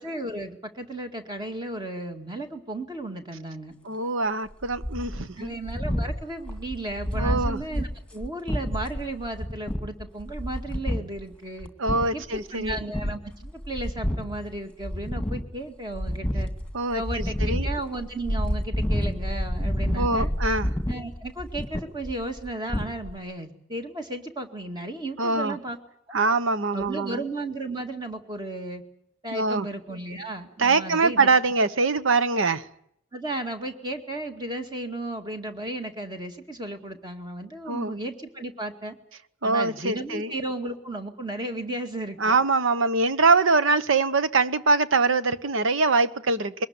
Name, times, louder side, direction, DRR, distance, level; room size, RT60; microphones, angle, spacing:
voice 1, 0.0-3.7 5.4-11.7 12.1-16.5 16.9-20.3 20.9-25.8 26.1-26.2 26.7-28.8 29.2-31.3 33.1-39.0 39.4-42.4, right 2 dB, 20° right, 2.1 m, -34 dB
voice 2, 3.8-5.5 7.1-7.6 11.8-12.8 16.7-17.7 19.9-20.7 25.2-25.6 26.1-27.2 29.3-29.7 30.6-32.7 37.7-38.0 39.4-40.3 42.2-46.7, right 3 dB, 65° right, 1.0 m, -23 dB
sound 1, 4.5-11.3 11.6-12.4 12.7-14.6 14.8-15.6 15.9-23.2, equal, 5° left, 2.4 m, -29 dB
22.0 x 19.5 x 9.6 m
head